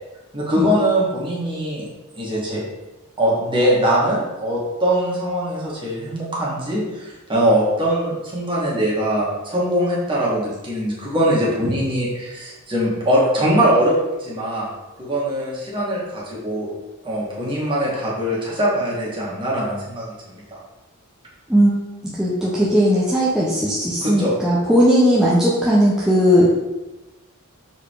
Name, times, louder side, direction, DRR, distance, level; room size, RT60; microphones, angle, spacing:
voice 1, 0.3-1.8 2.1-2.6 3.2-13.9 14.2-14.7 15.0-16.7 17.0-20.6 24.0-24.3, equal, 25° right, -6 dB, 2.5 m, -22 dB
voice 2, 22.0-26.5, equal, 5° right, -8 dB, 1.1 m, -17 dB
6.9 x 4.8 x 4.9 m, 1.1 s
head